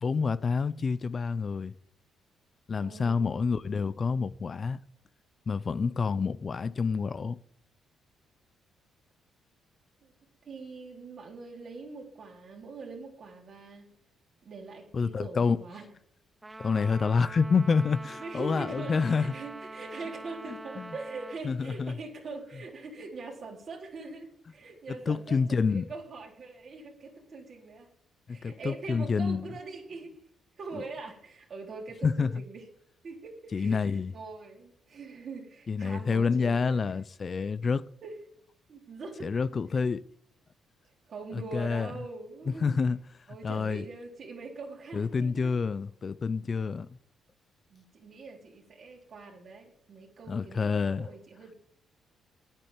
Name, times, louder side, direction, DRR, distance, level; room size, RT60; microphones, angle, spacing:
voice 1, 0.0-1.7 2.7-4.8 5.5-7.4 14.9-15.6 16.6-19.3 20.5-20.9 21.4-22.0 24.9-25.8 28.3-29.5 30.7-30.8 32.0-32.4 33.5-34.1 35.7-37.8 39.2-40.0 41.3-41.9 42.6-43.0 43.4-43.8 44.9-46.9 50.3-51.1, left 5 dB, 40° left, 0.5 m, -28 dB
voice 2, 2.8-3.2 10.0-10.1 10.4-13.9 14.4-15.9 18.2-27.9 28.3-30.1 30.6-32.6 33.0-36.8 38.0-38.1 38.7-39.4 41.1-42.7 43.3-45.6 47.7-51.5, right 3 dB, 50° right, 3.9 m, -43 dB
Trumpet, 16.4-21.4, right 2 dB, 15° right, 0.7 m, -44 dB
10.0 x 9.0 x 7.4 m
cardioid pair, 90°, 0 cm